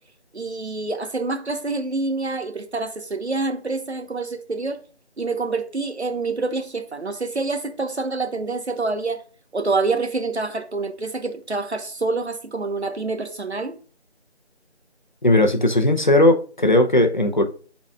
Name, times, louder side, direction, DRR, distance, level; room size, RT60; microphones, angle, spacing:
voice 1, 0.3-4.8 5.2-9.2 9.5-13.7, right 3 dB, 70° right, 1.2 m, -27 dB
voice 2, 15.2-17.4, left 1 dB, 40° left, 0.8 m, -17 dB
11.0 x 4.1 x 2.4 m
figure-of-eight pair, 170°, 34 cm